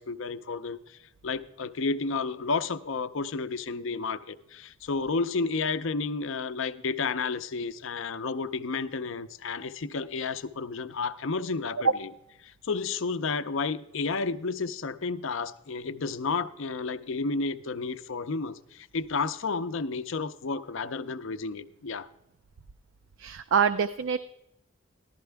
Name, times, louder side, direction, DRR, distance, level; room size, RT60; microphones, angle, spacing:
voice 1, 0.0-12.1 12.4-22.1, left 4 dB, 65° left, 11 dB, 0.6 m, -31 dB
voice 2, 23.2-24.2, right 7 dB, 65° right, 11 dB, 0.4 m, -25 dB
14.5 x 12.0 x 3.4 m, 0.82 s
head